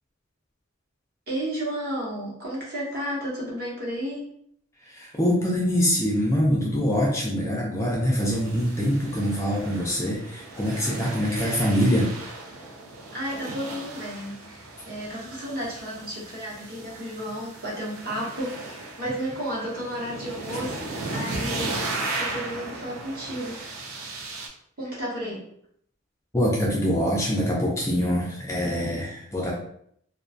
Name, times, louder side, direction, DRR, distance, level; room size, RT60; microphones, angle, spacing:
voice 1, 1.3-4.3 13.1-20.8 21.1-23.9 24.8-25.4, equal, 50° right, -5 dB, 0.9 m, -33 dB
voice 2, 4.9-12.1 26.3-29.5, equal, 15° left, -3 dB, 0.3 m, -24 dB
sound 1, 8.2-24.5, right 2 dB, 90° right, 0.5 m, -36 dB
2.3 x 2.2 x 2.5 m, 0.68 s
head